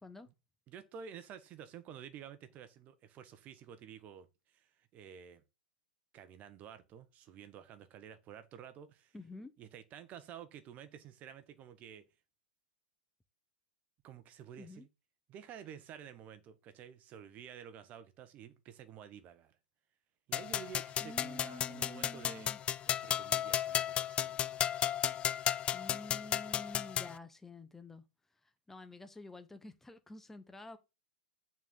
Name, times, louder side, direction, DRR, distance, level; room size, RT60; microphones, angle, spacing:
voice 1, 0.7-5.4 6.1-9.1 9.6-12.1 14.0-14.9 15.3-19.6 20.3-22.5 22.9-24.4, right 8 dB, 35° right, 1.2 m, -51 dB
voice 2, 9.1-9.5 14.6-14.9 21.0-22.6 25.7-28.0 28.7-30.8, left 2 dB, 5° left, 0.9 m, -49 dB
sound 1, 20.3-27.2, left 10 dB, 25° left, 0.3 m, -34 dB
8.9 x 4.3 x 3.8 m
hypercardioid pair, 110°, 5 cm